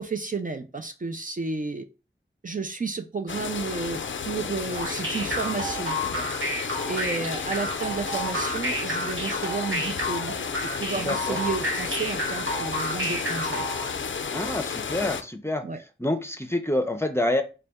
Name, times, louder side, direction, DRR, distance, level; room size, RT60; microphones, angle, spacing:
voice 1, 0.0-1.9 2.4-6.3 6.8-10.3 10.8-13.6 15.6-15.8, right 4 dB, 40° right, 6 dB, 0.4 m, -32 dB
sound 1, 3.3-15.2, left 6 dB, 70° left, 0.4 m, -32 dB
sound 2, 4.7-13.9, equal, 80° right, 1.4 m, -30 dB
voice 2, 10.9-11.4 14.3-15.6 16.0-17.4, left 1 dB, 10° left, 7 dB, 0.6 m, -27 dB
4.0 x 2.2 x 3.5 m, 0.32 s
wide cardioid pair, 50°, 21 cm